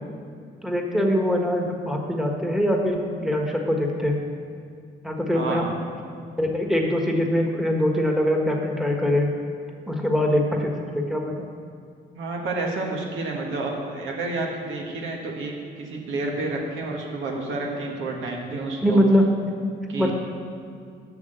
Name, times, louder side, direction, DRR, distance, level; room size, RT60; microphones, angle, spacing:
voice 1, 0.6-4.2 5.0-5.7 6.4-9.3 9.9-11.5 18.8-19.2 20.0-20.1, equal, ahead, 1 dB, 1.4 m, -23 dB
voice 2, 5.3-5.7 12.1-19.0 19.9-20.1, right 2 dB, 80° right, 0 dB, 1.7 m, -30 dB
8.3 x 6.2 x 7.9 m, 2.2 s
cardioid pair, 90°, 20 cm